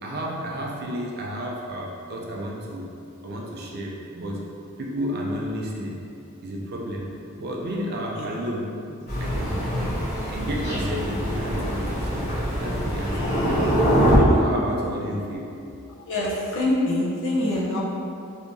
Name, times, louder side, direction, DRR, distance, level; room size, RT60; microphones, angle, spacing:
voice 1, 0.0-2.9 3.2-4.4 4.8-6.0 6.4-7.1 7.4-8.7 9.2-10.0 10.3-12.3 12.6-13.7 14.0-15.5, equal, 45° right, -2 dB, 0.4 m, -31 dB
Thunder, 9.1-14.2, equal, 40° left, 1.2 m, -24 dB
voice 2, 16.1-17.8, left 1 dB, 55° left, -6 dB, 0.7 m, -24 dB
3.6 x 2.8 x 2.7 m, 2.6 s
head